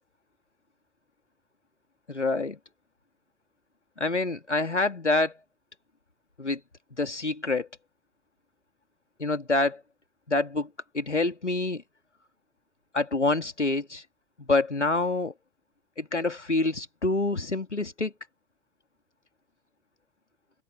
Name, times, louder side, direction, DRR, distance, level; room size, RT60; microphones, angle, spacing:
voice 1, 2.1-2.6 4.0-5.3 6.4-6.6 7.0-7.7 9.2-9.8 10.3-10.7 10.9-11.8 12.9-14.0 14.4-15.3 16.0-18.1, left 2 dB, 90° left, 2.5 m, -26 dB
figure-of-eight pair, 90°, 34 cm